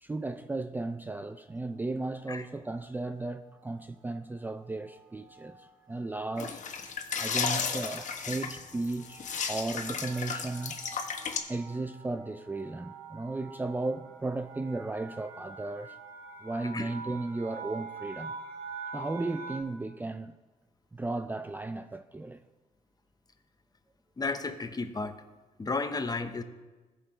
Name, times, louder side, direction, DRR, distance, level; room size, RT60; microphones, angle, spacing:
voice 1, 0.0-6.6 7.2-9.2 9.5-10.8 11.5-16.0 16.4-18.3 18.9-20.3 20.9-22.4, right 2 dB, 15° right, 0.4 m, -35 dB
sound 1, 1.5-1.9 2.7-3.1 3.4-3.6 3.8-19.6, right 5 dB, 85° right, 1.3 m, -47 dB
sound 2, 6.4-11.4, left 6 dB, 60° left, 1.2 m, -34 dB
voice 2, 24.2-25.1 25.6-26.4, left 3 dB, 30° left, 0.9 m, -33 dB
15.5 x 6.3 x 3.2 m
supercardioid pair, 65°, 14 cm